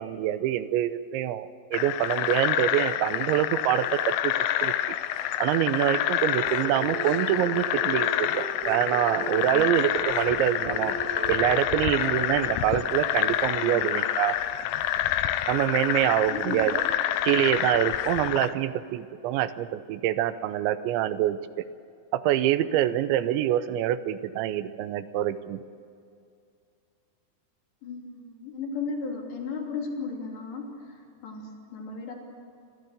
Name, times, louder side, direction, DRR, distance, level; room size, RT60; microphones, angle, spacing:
voice 1, 0.0-4.3 4.6-4.7 5.4-8.3 8.7-10.9 11.3-14.4 15.5-16.8 17.2-21.4 22.1-25.6, right 12 dB, 85° right, 13 dB, 3.0 m, -25 dB
sound 1, 1.7-18.5, left 12 dB, 90° left, 2.1 m, -28 dB
sound 2, 6.3-16.1, right 3 dB, 55° right, 0.9 m, -39 dB
voice 2, 9.4-9.8 13.6-13.8 16.3-16.8 27.8-32.1, left 4 dB, 70° left, -1 dB, 5.3 m, -35 dB
26.5 x 13.5 x 8.1 m, 2.5 s
omnidirectional pair, 5.3 m